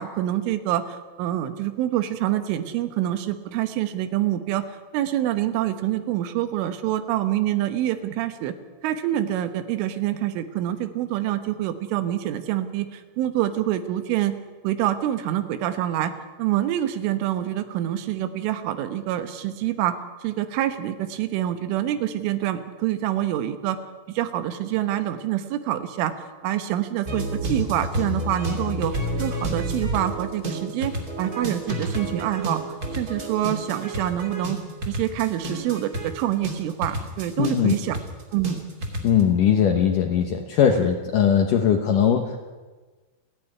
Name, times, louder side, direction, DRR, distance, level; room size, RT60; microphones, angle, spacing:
voice 1, 0.0-4.7 4.9-8.5 8.8-14.4 14.6-16.1 16.4-20.0 20.2-23.8 24.1-28.9 29.2-30.9 31.2-32.6 32.9-34.6 34.9-38.0 38.3-38.6, right 12 dB, 90° right, 10 dB, 3.7 m, -26 dB
sound 1, 27.1-39.2, right 1 dB, 25° right, 2.3 m, -30 dB
voice 2, 37.4-37.7 39.0-42.4, left 8 dB, 80° left, 4 dB, 1.8 m, -20 dB
29.0 x 10.0 x 9.9 m, 1.3 s
omnidirectional pair, 5.4 m